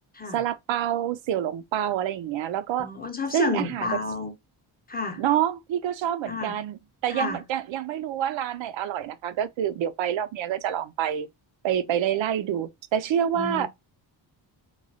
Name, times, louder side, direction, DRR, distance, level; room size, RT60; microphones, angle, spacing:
voice 1, 0.3-2.9 3.3-4.0 5.2-11.3 11.6-13.7, right 10 dB, 70° right, 0.5 m, -27 dB
voice 2, 2.8-4.3 4.9-5.2 6.3-6.6 7.1-7.4 13.3-13.7, left 4 dB, 20° left, 0.6 m, -30 dB
3.0 x 2.3 x 2.6 m
cardioid pair, 105°, 47 cm